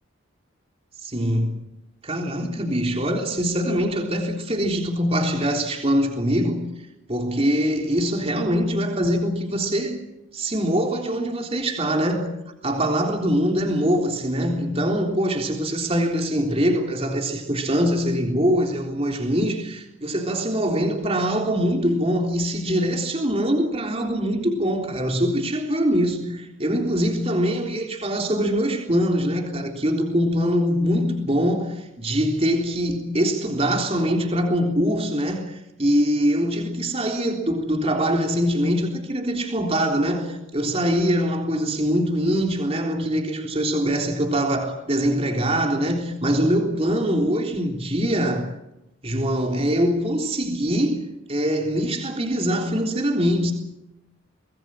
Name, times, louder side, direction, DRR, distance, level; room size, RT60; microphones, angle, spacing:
voice 1, 1.0-1.6 2.0-6.7 7.1-10.0 10.3-12.4 12.6-48.5 49.0-51.0 51.3-53.5, equal, 30° right, 3.6 m, -23 dB
25.0 x 20.0 x 7.7 m
head